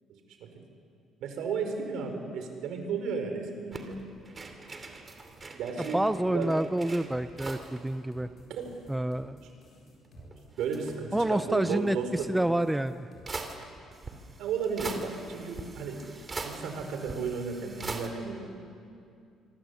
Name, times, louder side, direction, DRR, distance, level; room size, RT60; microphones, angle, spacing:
voice 1, 1.2-4.0 5.6-6.0 6.3-6.5 8.5-8.7 10.6-12.1 14.4-16.0 16.4-18.5, right 5 dB, 70° right, 5 dB, 4.8 m, -33 dB
sound 1, 3.7-7.8 8.1-8.2 8.4-9.5 10.0-11.3 12.5-12.6 13.3-18.1, right 3 dB, 25° right, 2.7 m, -42 dB
voice 2, 5.8-8.3 8.9-9.4 11.1-13.1, right 1 dB, 5° right, 11 dB, 0.6 m, -28 dB
sound 2, 6.8-13.3, left 2 dB, 45° left, 7.3 m, -56 dB
25.5 x 24.5 x 8.5 m, 2.4 s
cardioid pair, 150°, 0 cm